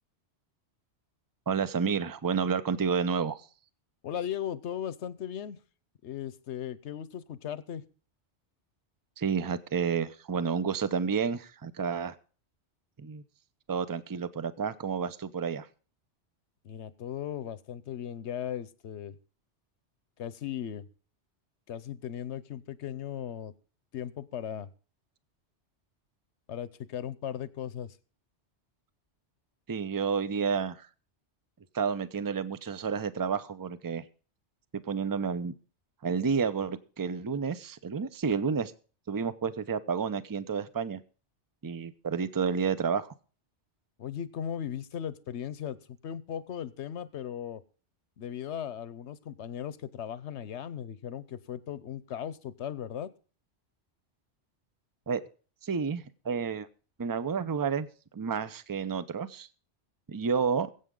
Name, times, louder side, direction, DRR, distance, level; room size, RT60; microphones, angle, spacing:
voice 1, 1.5-3.4 9.2-12.1 13.0-13.2 13.7-15.7 29.7-30.9 31.7-34.0 34.7-35.5 36.0-38.7 39.1-41.0 41.6-43.1 55.1-55.2 55.6-56.7 57.0-57.9 58.1-59.5 60.1-60.7, right 6 dB, 25° right, 14 dB, 0.5 m, -30 dB
voice 2, 4.0-5.6 6.0-7.8 16.6-19.2 20.2-20.9 21.7-23.5 23.9-24.7 26.5-28.0 44.0-45.8 46.0-47.6 48.2-53.1, left 9 dB, 75° left, 16 dB, 1.0 m, -37 dB
22.0 x 8.2 x 3.7 m, 0.38 s
omnidirectional pair, 1.2 m